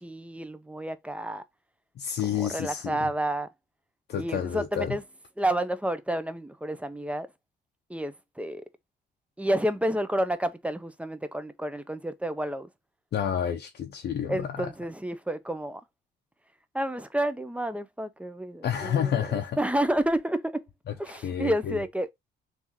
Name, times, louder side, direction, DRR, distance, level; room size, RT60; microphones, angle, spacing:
voice 1, 0.0-1.4 2.2-3.5 4.2-5.0 5.4-7.3 7.9-8.6 9.4-12.7 14.3-15.8 16.7-20.6 21.0-22.1, right 1 dB, 5° right, 0.4 m, -30 dB
voice 2, 2.0-3.1 4.1-5.0 13.1-14.7 18.6-19.6 20.9-21.8, left 9 dB, 55° left, 0.6 m, -30 dB
3.5 x 2.7 x 2.9 m
cardioid pair, 90°, 20 cm